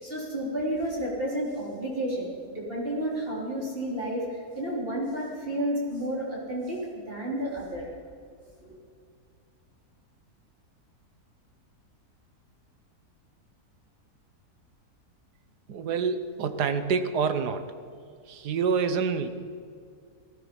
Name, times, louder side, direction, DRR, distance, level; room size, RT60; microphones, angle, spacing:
voice 1, 0.0-6.8 7.1-7.9 8.6-8.8, right 1 dB, 35° right, -5 dB, 3.9 m, -31 dB
voice 2, 15.7-17.7 18.3-19.3, right 5 dB, 85° right, 10 dB, 1.6 m, -27 dB
19.0 x 14.0 x 5.3 m, 2.3 s
omnidirectional pair, 1.7 m